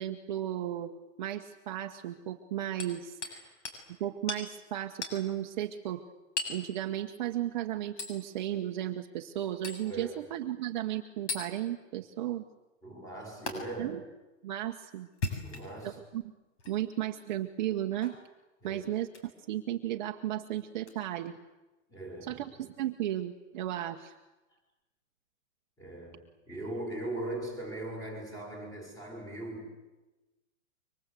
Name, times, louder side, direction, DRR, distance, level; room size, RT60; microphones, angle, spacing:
voice 1, 0.0-3.2 4.0-6.0 6.5-12.4 13.8-14.0 14.4-15.1 15.8-16.2 16.7-18.2 18.6-19.1 19.5-21.4 22.3-24.1, right 12 dB, 35° right, 4 dB, 1.2 m, -34 dB
Hammer, 2.8-3.4 3.7-3.8 4.3-4.5 5.0-5.2 6.4-6.6 8.0-8.2 9.6-9.9 11.3-11.5 13.5-13.6 15.1-15.9 16.6-16.7 18.0-18.2 19.1-19.3 20.8-20.9, left 3 dB, 60° left, 7.3 m, -36 dB
voice 2, 3.2-3.6 9.8-10.2 12.8-13.9 15.4-16.0 18.6-18.8 21.9-22.4 25.8-29.7, right 2 dB, 10° left, 3 dB, 5.9 m, -40 dB
26.0 x 24.5 x 8.3 m, 1.1 s
hypercardioid pair, 170°, 40 cm